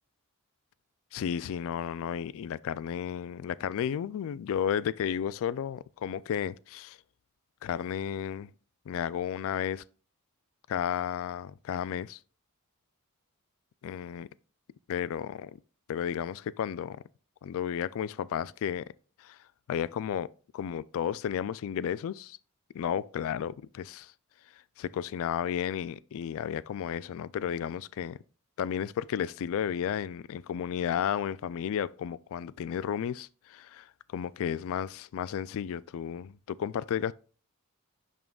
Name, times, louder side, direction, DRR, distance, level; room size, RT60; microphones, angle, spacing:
voice 1, 1.1-7.0 7.6-8.5 8.9-9.8 10.7-12.2 13.8-14.3 14.9-15.5 15.9-17.0 17.4-18.8 19.2-19.4 19.7-22.4 22.7-24.1 24.8-28.2 28.6-33.9 34.1-37.1, left 8 dB, 65° left, 0.3 m, -33 dB
11.0 x 3.7 x 2.3 m
head